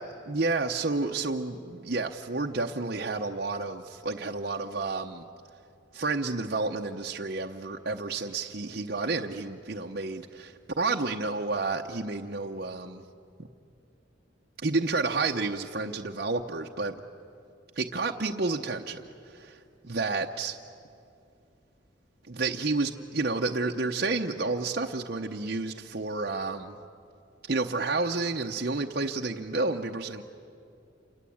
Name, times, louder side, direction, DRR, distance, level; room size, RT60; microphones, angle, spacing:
voice 1, 0.3-5.2 5.9-13.0 14.6-16.9 17.8-19.0 19.9-20.6 22.3-26.8 27.5-30.2, right 3 dB, 50° right, 1 dB, 0.9 m, -30 dB
28.5 x 24.0 x 8.6 m, 2.5 s
head